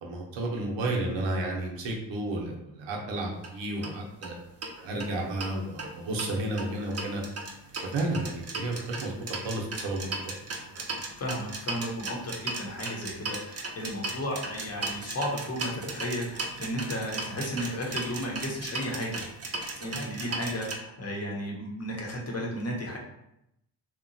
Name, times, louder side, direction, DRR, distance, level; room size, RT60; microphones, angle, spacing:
voice 1, 0.0-4.3 4.8-7.2 7.8-10.4, right 2 dB, 85° right, -1 dB, 0.7 m, -32 dB
sound 1, 3.4-3.5 3.8-3.9 4.2-4.3 4.6-5.5 5.8-20.8, right 3 dB, 35° right, 0.5 m, -36 dB
voice 2, 11.2-19.2 19.8-23.0, equal, 35° left, -1 dB, 0.8 m, -34 dB
2.8 x 2.2 x 2.6 m, 0.82 s
cardioid pair, 70°, 44 cm